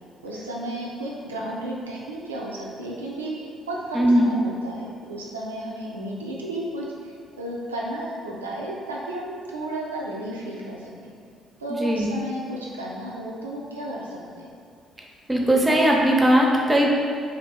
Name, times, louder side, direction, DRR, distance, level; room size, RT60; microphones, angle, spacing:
voice 1, 0.2-11.1 11.6-14.5, right 1 dB, 85° right, -4 dB, 0.5 m, -33 dB
voice 2, 3.9-4.3 11.7-12.1 15.3-16.9, equal, 20° right, -1 dB, 0.7 m, -19 dB
3.3 x 2.7 x 3.8 m, 2.3 s
figure-of-eight pair, 45°, 0 cm